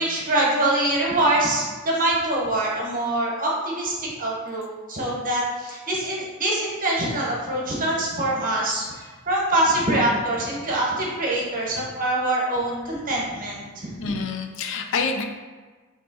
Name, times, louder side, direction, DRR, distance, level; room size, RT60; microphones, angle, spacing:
voice 1, 0.0-13.9, right 1 dB, 40° right, -3 dB, 1.0 m, -24 dB
voice 2, 14.0-15.2, left 4 dB, 60° left, 5 dB, 0.4 m, -27 dB
3.2 x 3.0 x 4.5 m, 1.4 s
head